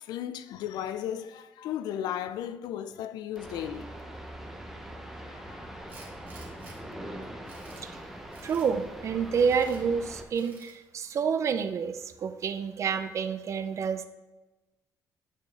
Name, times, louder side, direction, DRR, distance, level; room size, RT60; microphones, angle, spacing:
voice 1, 0.0-3.9 5.3-5.7, left 10 dB, 85° left, 0.4 m, -35 dB
sound 1, 3.4-10.2, right 1 dB, 5° right, 0.8 m, -42 dB
Tools, 5.9-6.8 7.2-7.9 8.3-8.7 9.3-9.8 10.3-10.8, right 3 dB, 30° right, 1.9 m, -52 dB
voice 2, 8.4-14.1, right 6 dB, 45° right, 0.5 m, -28 dB
9.0 x 4.5 x 3.4 m
cardioid pair, 130°, 7 cm